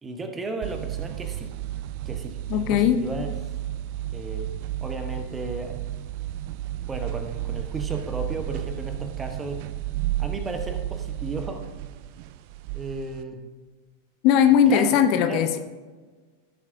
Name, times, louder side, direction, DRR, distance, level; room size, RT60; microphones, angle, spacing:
voice 1, 0.0-1.5 2.1-3.3 4.1-4.5 4.8-5.8 6.9-9.6 10.2-11.7 12.7-13.4 14.7-15.0 15.3-15.6, right 2 dB, 15° right, 6 dB, 1.0 m, -34 dB
sound 1, 0.6-13.2, right 14 dB, 45° right, 0.3 m, -32 dB
voice 2, 2.5-3.0 14.2-15.6, left 8 dB, 45° left, 8 dB, 0.7 m, -19 dB
14.5 x 7.3 x 2.7 m, 1.4 s
figure-of-eight pair, 90°, 0 cm